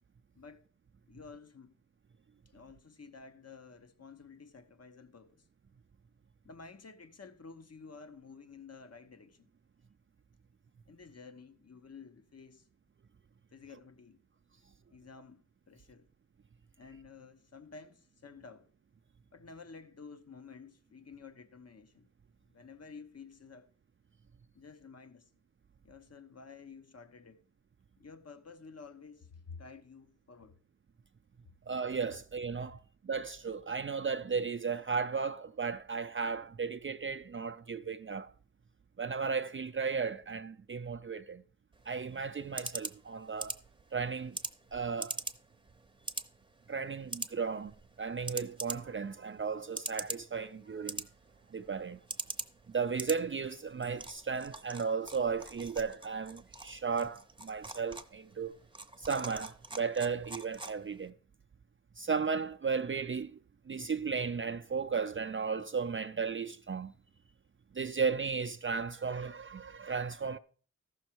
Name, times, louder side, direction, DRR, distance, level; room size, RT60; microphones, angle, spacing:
voice 1, 1.1-1.7 2.5-5.5 6.4-9.5 10.9-12.7 13.5-14.2 14.9-16.1 16.8-18.7 19.3-22.1 22.5-23.7 24.5-25.3 25.8-27.4 28.0-30.6 32.7-32.8, left 5 dB, 55° left, 0.9 m, -52 dB
voice 2, 31.7-32.8 33.0-38.3 39.0-41.4 41.9-43.6 43.9-44.4 44.7-45.2 46.7-51.1 51.5-52.0 52.7-58.5 59.0-61.1 62.0-63.3 63.7-66.9 67.7-70.4, right 5 dB, 40° right, 0.4 m, -35 dB
sound 1, 41.7-61.1, right 2 dB, 15° right, 0.7 m, -44 dB
14.0 x 6.3 x 4.5 m
wide cardioid pair, 80°, 30 cm